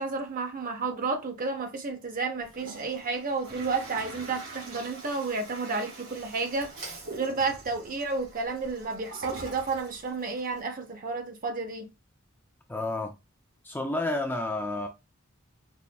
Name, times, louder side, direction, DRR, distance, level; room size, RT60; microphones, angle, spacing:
voice 1, 0.0-6.7 7.1-11.9, right 4 dB, 45° right, 0.7 m, -31 dB
Toilet flush, 2.4-10.6, right 2 dB, 85° right, 2.5 m, -44 dB
voice 2, 12.7-13.1 13.6-14.9, left 2 dB, 10° left, 0.4 m, -30 dB
5.3 x 2.5 x 2.2 m
head